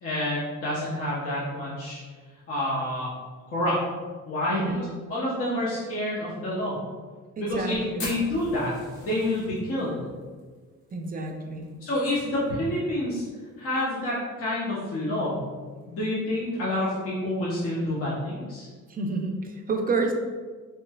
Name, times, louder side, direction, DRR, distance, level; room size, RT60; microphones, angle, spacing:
voice 1, 0.0-2.0 2.5-3.1 3.5-3.8 4.3-6.8 7.4-8.7 9.0-10.0 11.9-13.2 13.6-15.4 15.9-18.7, left 1 dB, 50° left, -7 dB, 0.9 m, -28 dB
voice 2, 4.5-4.9 7.4-8.1 10.9-11.7 18.9-20.1, right 3 dB, 30° right, 3 dB, 0.4 m, -29 dB
Fire, 8.0-12.5 12.7-12.8 13.1-13.2 13.6-14.0 14.5-14.6 15.7-15.8, left 1 dB, 80° left, 1.2 m, -41 dB
3.1 x 3.0 x 2.3 m, 1.5 s
cardioid pair, 90°, 30 cm